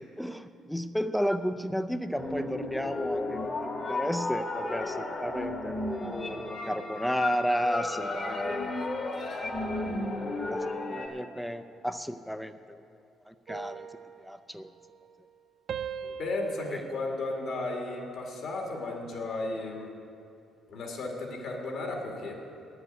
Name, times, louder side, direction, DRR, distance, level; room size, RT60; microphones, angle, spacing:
voice 1, 0.0-3.6 3.9-8.6 9.7-9.9 10.5-12.8 13.3-13.9 14.2-14.7 16.0-16.2 16.7-16.8, equal, ahead, 10 dB, 0.5 m, -33 dB
sound 1, 2.2-11.1, left 2 dB, 35° left, 1.3 m, -33 dB
voice 2, 7.9-8.9 9.2-9.4 16.2-19.9 20.7-22.4, left 2 dB, 65° left, 0 dB, 2.3 m, -34 dB
sound 2, 13.5-15.4 15.7-18.3 18.7-19.1, right 7 dB, 60° right, 0.4 m, -42 dB
9.4 x 8.0 x 9.2 m, 2.6 s
cardioid pair, 105°, 0 cm